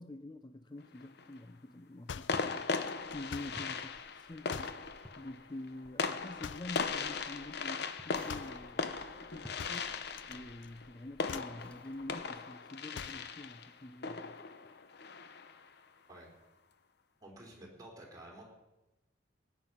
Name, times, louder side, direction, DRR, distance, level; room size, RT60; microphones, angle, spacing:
voice 1, 0.0-8.9 9.2-14.4, left 2 dB, 25° left, 8 dB, 0.5 m, -47 dB
sound 1, 0.8-1.4 2.3-15.7, left 4 dB, 65° left, 0.8 m, -39 dB
sound 2, 2.1-3.7 4.5-4.9 6.4-6.8 8.3-8.7 9.6-10.4 10.6-10.9 11.2-11.6 12.9-13.3, left 7 dB, 85° left, 0.4 m, -45 dB
sound 3, 2.1-12.3, equal, 5° left, 1.1 m, -57 dB
voice 2, 17.2-18.4, right 1 dB, 20° right, -1 dB, 3.7 m, -51 dB
18.0 x 9.4 x 5.6 m, 1.0 s
head